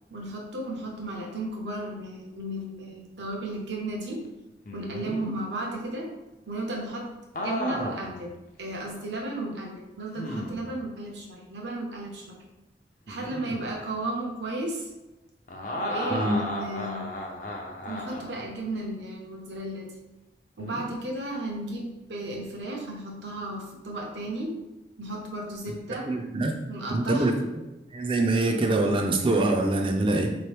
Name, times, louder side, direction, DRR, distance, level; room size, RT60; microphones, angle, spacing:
voice 1, 0.1-4.2 4.7-6.1 6.5-7.1 7.4-8.3 8.6-12.4 13.1-14.9 15.8-17.1 17.9-19.9 20.6-24.5 25.0-26.1 26.7-27.3, right 1 dB, 85° right, -1 dB, 0.9 m, -34 dB
sound 1, 4.7-5.3 7.3-8.2 8.7-8.8 10.2-10.7 13.1-13.7 15.5-18.4 20.6-21.0, left 1 dB, 45° left, 0.6 m, -34 dB
voice 2, 16.1-16.4 26.1-26.5 26.9-27.3 27.9-30.4, right 2 dB, 30° right, 3 dB, 0.4 m, -24 dB
4.2 x 3.0 x 3.3 m, 1.0 s
head